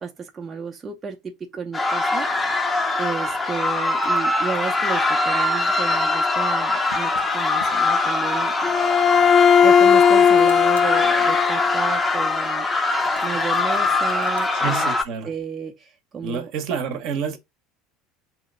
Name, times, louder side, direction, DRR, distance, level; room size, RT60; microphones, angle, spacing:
voice 1, 0.0-2.3 3.0-8.5 9.4-12.7 13.2-14.9 15.2-16.5, right 6 dB, 25° right, 0.7 m, -32 dB
sound 1, 1.7-15.0, left 2 dB, 15° left, 0.8 m, -22 dB
sound 2, 4.0-5.1 6.9-7.3 7.6-7.7 8.1-8.2 10.2-11.0 13.0-14.5, left 4 dB, 85° left, 0.6 m, -43 dB
Bowed string instrument, 8.6-12.1, left 7 dB, 40° left, 0.3 m, -17 dB
voice 2, 14.5-15.3 16.2-17.4, right 6 dB, 55° right, 0.9 m, -28 dB
3.8 x 3.0 x 3.7 m
figure-of-eight pair, 70°, 0 cm